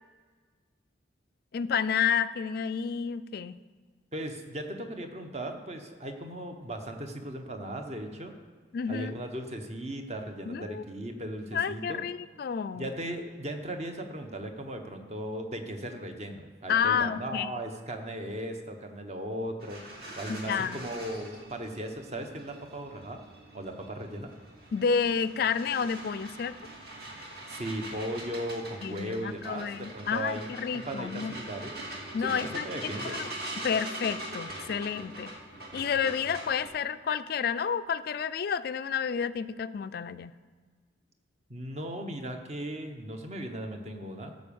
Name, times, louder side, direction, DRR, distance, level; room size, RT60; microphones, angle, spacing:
voice 1, 1.5-3.5 8.7-9.2 10.5-10.8 11.5-12.9 16.7-17.5 20.3-20.8 24.7-26.5 28.8-31.4 32.1-33.3 33.6-35.3 35.7-40.4, left 7 dB, 55° left, 13 dB, 0.3 m, -30 dB
voice 2, 4.1-8.3 8.9-12.0 12.7-23.2 23.5-24.3 27.5-31.7 32.2-33.2 41.5-44.3, right 1 dB, 35° right, 5 dB, 1.0 m, -37 dB
sound 1, 19.6-36.7, right 1 dB, 55° right, 2.3 m, -42 dB
13.5 x 5.2 x 7.0 m, 1.5 s
head